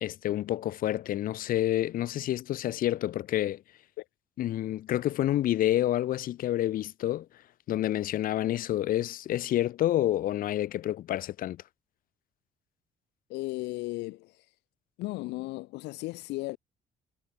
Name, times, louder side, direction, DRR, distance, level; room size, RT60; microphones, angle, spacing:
voice 1, 0.0-3.6 4.4-7.3 7.7-11.6, left 13 dB, 55° left, 0.6 m, -28 dB
voice 2, 13.3-14.5 15.0-16.6, left 21 dB, 90° left, 1.0 m, -36 dB
cardioid pair, 110°, 17 cm